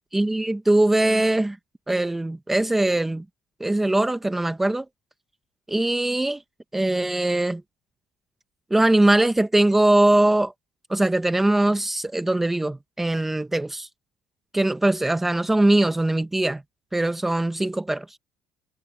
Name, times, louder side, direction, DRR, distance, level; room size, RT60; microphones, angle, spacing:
voice 1, 0.1-1.6 1.9-3.2 3.6-4.9 5.7-6.4 6.7-7.6 8.7-10.5 10.9-13.9 14.5-16.6 16.9-18.1, right 1 dB, 5° right, 0.6 m, -21 dB
cardioid pair, 175°, 4 cm